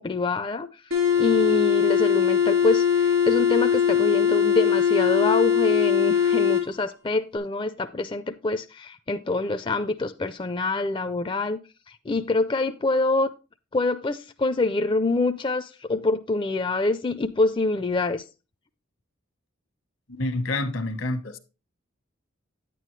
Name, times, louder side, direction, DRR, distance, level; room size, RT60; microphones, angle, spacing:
voice 1, 0.0-11.6 11.9-13.3 13.7-18.3, left 2 dB, 25° left, 0.4 m, -26 dB
sound 1, 0.9-6.7, left 8 dB, 80° right, 3.7 m, -21 dB
voice 2, 20.1-21.4, left 2 dB, 75° left, 1.2 m, -28 dB
9.5 x 9.2 x 3.1 m
head